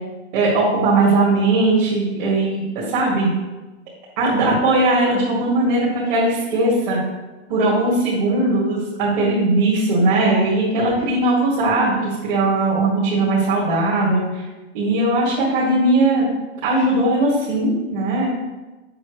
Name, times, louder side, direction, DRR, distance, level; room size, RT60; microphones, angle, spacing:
voice 1, 0.3-3.3 4.2-7.0 7.5-14.4 14.7-16.2 16.6-18.3, right 2 dB, 40° right, -7 dB, 2.3 m, -19 dB
7.6 x 7.1 x 3.2 m, 1.1 s
supercardioid pair, 165°, 35 cm